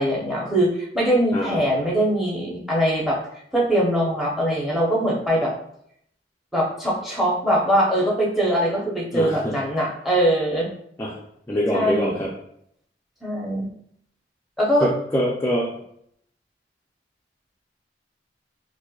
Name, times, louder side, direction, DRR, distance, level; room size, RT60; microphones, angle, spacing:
voice 1, 0.0-3.2 3.5-5.5 6.5-10.7 11.7-12.2 13.2-13.7 14.6-14.9, equal, ahead, -3 dB, 0.8 m, -22 dB
voice 2, 9.1-9.5 11.0-11.1 11.5-12.3 14.8-15.7, equal, 15° left, -4 dB, 0.4 m, -24 dB
4.3 x 2.5 x 2.3 m, 0.71 s
head